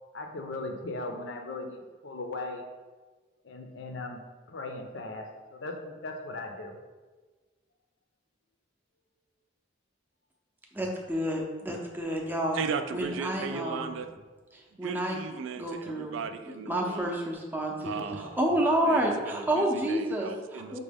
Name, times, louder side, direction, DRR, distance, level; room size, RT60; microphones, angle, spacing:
voice 1, 0.1-2.6 3.4-4.2 4.5-6.8, left 2 dB, 75° left, 3 dB, 0.5 m, -38 dB
voice 2, 10.7-12.6 12.9-13.9 14.8-15.2 15.6-16.2 16.7-20.8, right 1 dB, 10° right, -1 dB, 0.5 m, -29 dB
voice 3, 12.5-14.1 14.8-17.2 17.8-18.4 18.8-20.8, right 5 dB, 80° right, 9 dB, 0.3 m, -36 dB
5.9 x 2.2 x 3.4 m, 1.3 s
head